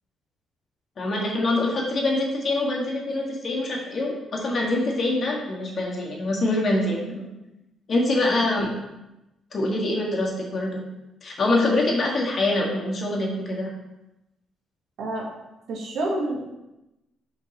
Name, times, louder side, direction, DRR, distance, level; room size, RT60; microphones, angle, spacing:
voice 1, 1.0-7.2 7.9-8.7 9.5-10.8 11.2-13.7, left 2 dB, 45° left, -1 dB, 1.5 m, -24 dB
voice 2, 15.7-16.5, right 1 dB, 75° right, -1 dB, 1.5 m, -28 dB
5.1 x 4.0 x 5.0 m, 0.95 s
cardioid pair, 90°, 0 cm